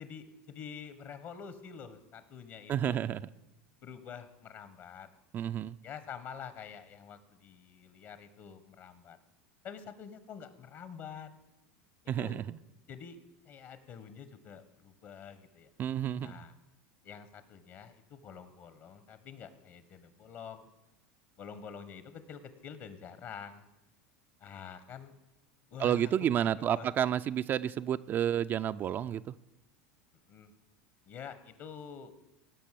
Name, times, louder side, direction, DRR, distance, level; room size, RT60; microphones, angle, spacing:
voice 1, 0.0-3.0 3.8-5.1 5.8-9.2 9.6-11.3 12.2-12.4 12.9-13.2 13.4-15.7 16.2-16.5 17.0-20.7 21.4-23.7 24.4-25.2 25.7-27.1 30.3-30.5 31.0-32.1, left 7 dB, 50° left, 1.3 m, -47 dB
voice 2, 2.7-3.2 5.3-5.8 12.1-12.6 15.8-16.3 25.8-29.3, right 10 dB, 35° right, 0.4 m, -30 dB
17.0 x 6.1 x 7.6 m
supercardioid pair, 115°, 6 cm